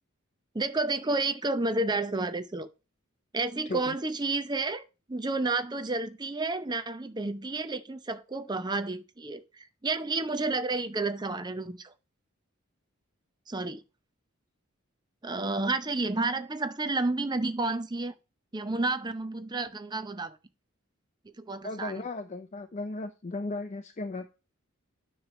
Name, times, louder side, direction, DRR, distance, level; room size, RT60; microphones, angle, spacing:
voice 1, 0.5-2.7 3.3-4.8 5.1-11.9 13.5-13.8 15.2-18.1 18.5-20.4 21.4-22.0, right 3 dB, 20° right, 0.6 m, -31 dB
voice 2, 21.6-24.3, left 2 dB, 35° left, 0.5 m, -36 dB
9.4 x 3.2 x 6.0 m
head